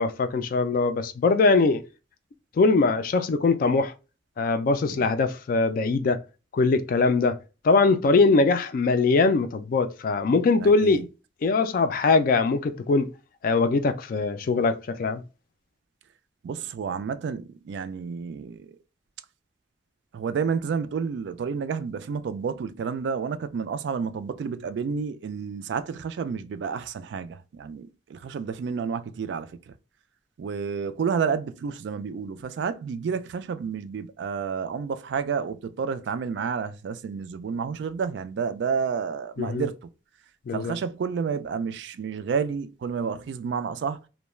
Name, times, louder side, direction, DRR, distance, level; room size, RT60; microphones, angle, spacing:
voice 1, 0.0-1.8 2.6-3.9 4.4-6.2 6.5-7.4 7.6-11.0 11.4-13.1 13.4-15.2 39.4-39.6 40.5-40.7, left 3 dB, 50° left, 0.3 m, -22 dB
voice 2, 10.6-11.1 16.4-18.8 20.1-29.7 30.4-39.9 40.5-44.0, right 6 dB, 70° right, 0.3 m, -30 dB
2.3 x 2.1 x 3.0 m
head